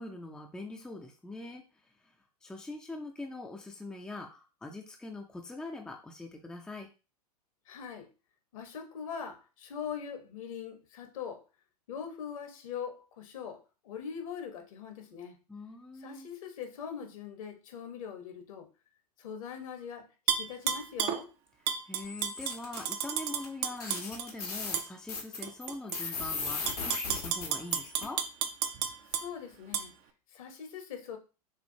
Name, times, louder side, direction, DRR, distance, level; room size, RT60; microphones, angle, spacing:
voice 1, 0.0-1.6 2.4-6.9 15.5-16.3 21.9-28.2, left 2 dB, 5° left, 0.5 m, -43 dB
voice 2, 7.7-8.1 8.5-11.4 11.9-15.4 16.0-18.7 19.2-20.1 20.4-21.3 29.1-29.9 30.3-31.2, left 7 dB, 60° left, 1.2 m, -41 dB
Tap / Glass, 20.3-21.2 21.7-24.3 24.7-24.9 25.4-26.0 26.5-29.3 29.7-29.8, right 8 dB, 40° right, 0.6 m, -32 dB
sound 1, 22.0-22.8 23.4-23.5 23.8-28.0, left 4 dB, 75° left, 1.3 m, -37 dB
6.3 x 2.5 x 2.8 m
figure-of-eight pair, 95°, 20 cm